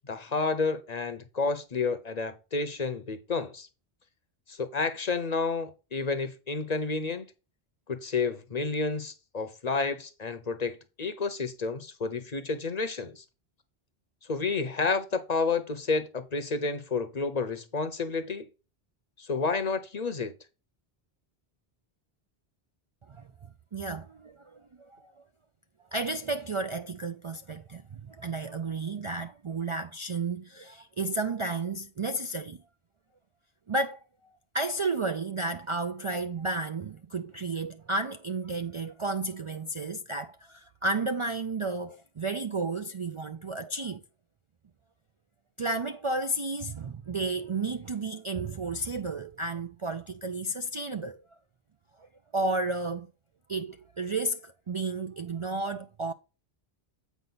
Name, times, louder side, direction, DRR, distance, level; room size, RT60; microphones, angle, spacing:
voice 1, 0.1-3.7 4.5-7.2 7.9-13.2 14.3-18.5 19.2-20.3, left 4 dB, 45° left, 0.8 m, -30 dB
voice 2, 23.1-25.2 25.9-32.6 33.7-34.0 34.5-44.0 45.6-51.2 52.0-53.1 53.5-56.1, right 3 dB, 45° right, 0.4 m, -32 dB
8.2 x 5.1 x 4.0 m
omnidirectional pair, 1.0 m